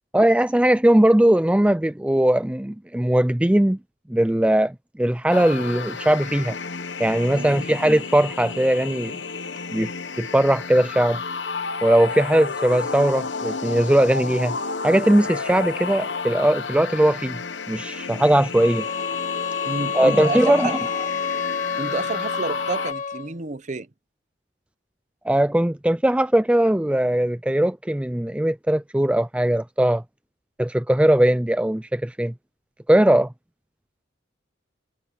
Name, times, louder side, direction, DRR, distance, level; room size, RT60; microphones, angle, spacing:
voice 1, 0.1-3.8 4.1-6.6 7.0-9.2 9.7-9.9 10.2-11.2 11.8-14.6 14.8-17.4 17.7-18.9 19.9-20.8 25.2-30.0 30.6-32.3 32.9-33.3, right 1 dB, 5° right, 0.4 m, -19 dB
sound 1, 5.3-22.9, left 4 dB, 65° left, 1.2 m, -32 dB
voice 2, 7.3-7.7 19.6-20.8 21.8-23.9, right 3 dB, 40° right, 0.8 m, -30 dB
sound 2, 18.6-23.3, left 6 dB, 40° left, 0.9 m, -28 dB
head